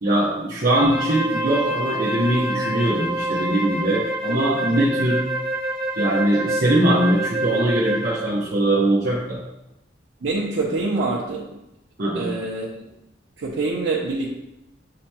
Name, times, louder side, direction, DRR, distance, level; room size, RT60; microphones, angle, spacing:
voice 1, 0.0-5.2 6.0-9.4 12.0-12.3, right 1 dB, 50° right, -7 dB, 0.8 m, -21 dB
Wind instrument woodwind instrument, 0.7-8.3, right 1 dB, 20° right, 0.7 m, -27 dB
voice 2, 10.2-11.5 12.1-12.7 13.4-14.3, right 3 dB, 85° right, -4 dB, 0.6 m, -25 dB
7.4 x 2.9 x 2.2 m, 0.88 s
head